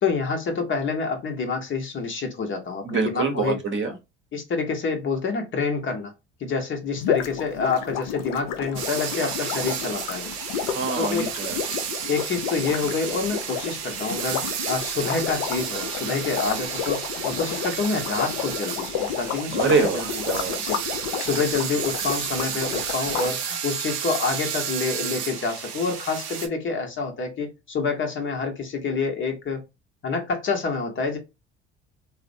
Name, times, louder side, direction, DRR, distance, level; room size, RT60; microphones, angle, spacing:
voice 1, 0.0-3.6 4.3-6.1 6.4-10.3 10.9-11.3 12.1-20.2 20.6-20.8 21.2-29.6 30.0-31.2, left 4 dB, 35° left, 0.8 m, -27 dB
voice 2, 2.8-3.9 10.7-11.5 19.5-20.5, right 5 dB, 35° right, 0.8 m, -25 dB
sound 1, 7.0-23.3, left 8 dB, 70° left, 0.6 m, -31 dB
sound 2, 8.8-26.5, right 8 dB, 70° right, 0.6 m, -32 dB
2.5 x 2.0 x 2.5 m
hypercardioid pair, 60°, 33 cm